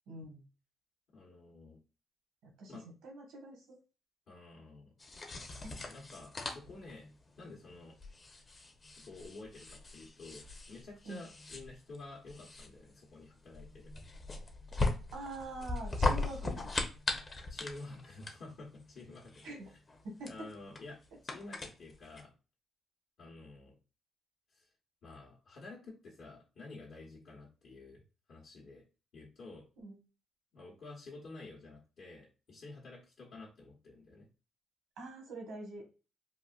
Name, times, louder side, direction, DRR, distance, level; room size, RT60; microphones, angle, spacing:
voice 1, 0.1-0.4 2.4-2.8 3.0-3.8 5.6-5.7 11.0-11.2 15.1-16.8 19.4-19.7 20.0-20.5 29.8-30.0 35.0-36.0, right 2 dB, 90° right, 2 dB, 1.4 m, -45 dB
voice 2, 1.1-1.8 2.7-2.8 4.3-4.9 5.8-7.1 7.4-8.0 9.1-13.9 17.5-19.8 20.3-22.3 23.2-23.8 24.5-24.7 25.0-28.0 28.3-28.8 29.1-29.7 30.5-34.3, left 2 dB, 65° left, -3 dB, 1.1 m, -50 dB
sound 1, 5.0-22.2, left 3 dB, 35° left, 0.7 m, -39 dB
4.0 x 2.5 x 2.3 m, 0.32 s
cardioid pair, 90°, 0 cm